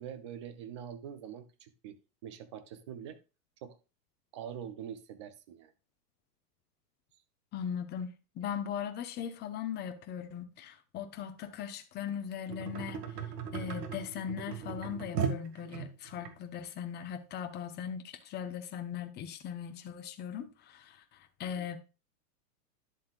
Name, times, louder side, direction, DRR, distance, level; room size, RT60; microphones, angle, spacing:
voice 1, 0.0-3.2 3.6-3.8 4.3-5.7 21.4-21.7, right 9 dB, 20° right, 0.3 m, -44 dB
voice 2, 7.5-13.0 13.5-21.8, left 8 dB, 20° left, 0.8 m, -39 dB
sound 1, 12.5-16.3 17.0-17.1, right 6 dB, 90° right, 2.0 m, -37 dB
11.0 x 7.4 x 2.4 m
hypercardioid pair, 140°, 48 cm